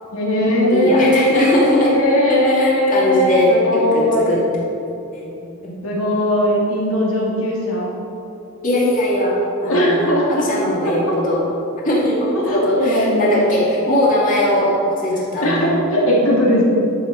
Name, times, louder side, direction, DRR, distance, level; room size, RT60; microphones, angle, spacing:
voice 1, 0.1-4.3 5.8-7.9 9.7-11.2 12.3-13.3 15.4-16.6, left 1 dB, 70° left, -4 dB, 2.5 m, -18 dB
voice 2, 0.7-1.9 2.3-4.7 5.1-5.3 5.6-5.7 8.6-11.5 11.8-15.7, left 1 dB, 35° left, -5 dB, 2.4 m, -20 dB
11.5 x 7.1 x 5.0 m, 2.7 s
head